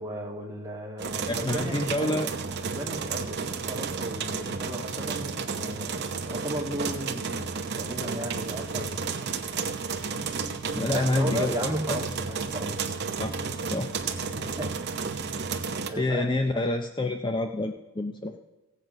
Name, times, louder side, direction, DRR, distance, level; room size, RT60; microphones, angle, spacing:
voice 1, 0.0-2.2 2.6-7.4 7.7-9.2 10.8-12.8 14.1-14.7 15.0-15.2 15.9-16.3, right 1 dB, 15° right, -2 dB, 2.3 m, -35 dB
sound 1, 1.0-15.9, right 5 dB, 50° right, 0.9 m, -32 dB
voice 2, 1.3-2.3 10.7-12.0 13.2-13.3 13.7-13.9 16.0-18.4, left 2 dB, 20° left, 5 dB, 0.5 m, -28 dB
16.5 x 8.1 x 5.3 m, 1.1 s
head